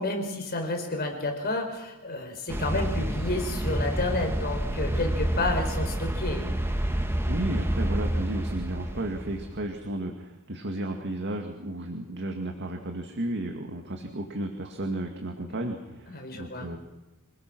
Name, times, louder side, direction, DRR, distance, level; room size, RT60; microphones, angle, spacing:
voice 1, 0.0-6.5 16.1-16.7, left 2 dB, 45° left, 4 dB, 4.7 m, -30 dB
sound 1, 2.5-9.7, right 1 dB, 10° right, 1.6 m, -29 dB
voice 2, 7.3-16.8, right 1 dB, 55° right, 3 dB, 2.2 m, -33 dB
27.0 x 19.0 x 6.1 m, 1.1 s
head